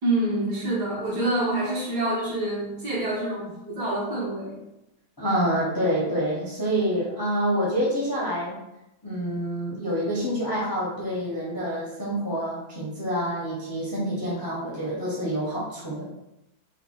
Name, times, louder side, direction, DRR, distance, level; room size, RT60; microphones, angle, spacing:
voice 1, 0.0-4.6, right 1 dB, 80° right, -6 dB, 2.0 m, -27 dB
voice 2, 5.2-8.6 9.0-16.1, equal, 30° left, -6 dB, 0.4 m, -27 dB
4.0 x 2.3 x 3.7 m, 0.90 s
omnidirectional pair, 1.8 m